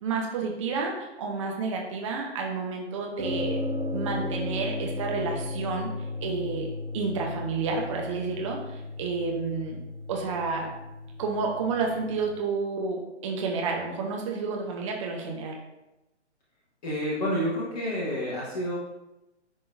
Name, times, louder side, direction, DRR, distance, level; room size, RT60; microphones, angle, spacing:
voice 1, 0.0-3.6 3.9-5.9 6.2-6.7 6.9-9.8 10.1-10.7 11.2-15.6, right 4 dB, 25° right, 0 dB, 0.8 m, -30 dB
sound 1, 3.2-12.3, left 2 dB, 80° right, 2.0 m, -35 dB
voice 2, 16.8-18.8, equal, 35° left, -5 dB, 1.3 m, -29 dB
10.0 x 3.8 x 2.6 m, 0.95 s
figure-of-eight pair, 130°, 35 cm